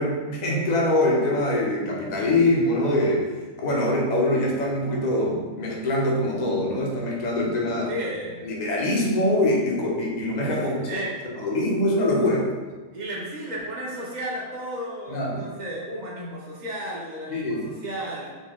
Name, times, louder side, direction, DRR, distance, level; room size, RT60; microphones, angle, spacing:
voice 1, 0.0-3.3 3.6-7.9 8.4-11.0 11.4-12.5 15.1-15.5 17.3-17.7, left 1 dB, 40° left, -2 dB, 0.7 m, -23 dB
voice 2, 7.9-8.4 10.4-11.1 12.9-18.3, right 1 dB, 40° right, -4 dB, 0.8 m, -33 dB
4.3 x 2.8 x 3.5 m, 1.3 s
omnidirectional pair, 1.4 m